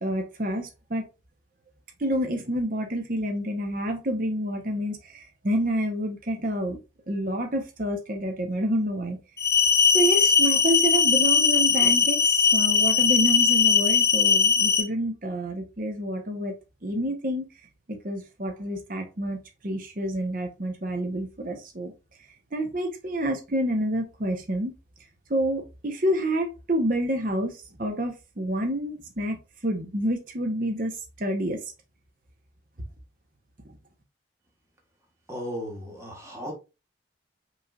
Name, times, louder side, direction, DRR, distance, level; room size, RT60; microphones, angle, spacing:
voice 1, 0.0-1.1 2.0-6.8 7.1-9.2 9.9-16.5 16.8-17.5 17.9-19.4 19.6-21.9 22.5-24.7 25.3-31.6, right 1 dB, 45° right, 0.8 m, -28 dB
sound 1, 9.4-14.8, left 6 dB, 15° left, 0.4 m, -20 dB
voice 2, 35.3-36.5, equal, 15° right, 1.2 m, -35 dB
5.4 x 3.2 x 2.3 m
head